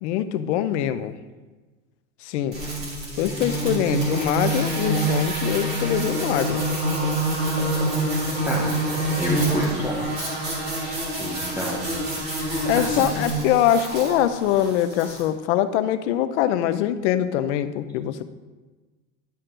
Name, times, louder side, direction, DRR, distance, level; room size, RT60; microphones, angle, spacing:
voice 1, 0.0-1.1 2.2-2.6 3.2-6.6 12.6-18.2, left 11 dB, 70° left, 12 dB, 0.6 m, -23 dB
sound 1, 2.5-15.2, right 1 dB, 25° right, 1.9 m, -26 dB
sound 2, 3.7-9.8, right 3 dB, 45° right, 1.2 m, -40 dB
voice 2, 9.2-10.2 10.7-12.1 12.8-13.1, right 1 dB, 5° right, -5 dB, 0.8 m, -31 dB
10.5 x 4.6 x 3.8 m, 1.3 s
supercardioid pair, 165°, 37 cm